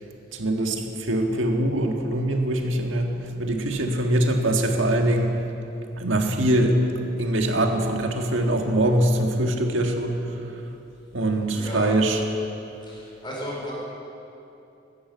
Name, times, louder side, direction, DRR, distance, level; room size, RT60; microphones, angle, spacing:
voice 1, 0.3-5.4 6.0-6.8 7.2-10.6 11.1-12.2, right 1 dB, 80° right, 3 dB, 1.7 m, -23 dB
voice 2, 11.4-11.9 12.8-13.7, equal, 25° left, -4 dB, 4.8 m, -34 dB
14.5 x 11.5 x 8.2 m, 2.8 s
head